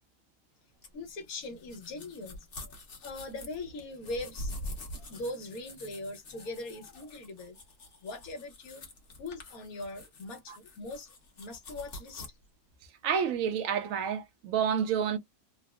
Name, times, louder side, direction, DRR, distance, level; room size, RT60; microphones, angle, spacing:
sound 1, 0.8-12.3, left 1 dB, 45° left, 0.8 m, -45 dB
voice 1, 0.9-4.6 5.1-7.6 8.0-8.8 9.2-12.3, left 2 dB, 65° left, 1.3 m, -41 dB
voice 2, 13.0-15.2, right 7 dB, 70° right, 0.9 m, -29 dB
3.4 x 2.0 x 2.3 m
omnidirectional pair, 1.7 m